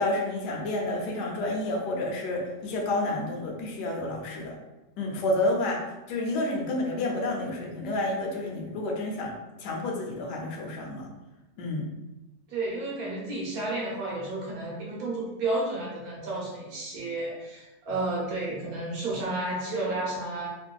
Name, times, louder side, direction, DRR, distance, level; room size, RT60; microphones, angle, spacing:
voice 1, 0.0-4.5 5.0-11.1 11.6-11.9, left 2 dB, 75° left, -1 dB, 1.2 m, -30 dB
voice 2, 12.5-20.5, right 2 dB, 65° right, -3 dB, 1.1 m, -31 dB
2.9 x 2.6 x 2.3 m, 1.0 s
omnidirectional pair, 1.9 m